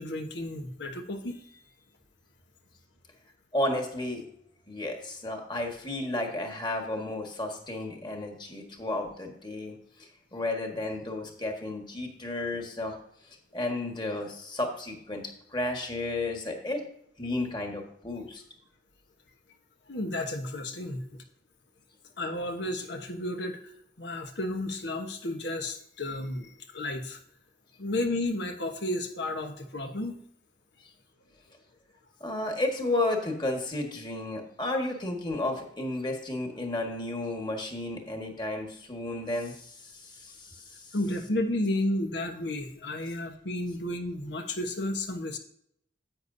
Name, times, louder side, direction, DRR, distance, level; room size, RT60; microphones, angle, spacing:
voice 1, 0.0-1.4 19.9-21.2 22.2-23.6 24.0-27.2 27.8-30.1 40.9-45.4, left 1 dB, 85° left, 5 dB, 1.2 m, -32 dB
voice 2, 3.5-4.2 4.7-9.7 10.3-12.9 13.5-15.2 15.5-16.8 17.2-18.4 32.2-40.6, left 2 dB, 25° left, 3 dB, 1.6 m, -32 dB
10.5 x 8.2 x 2.7 m, 0.69 s
head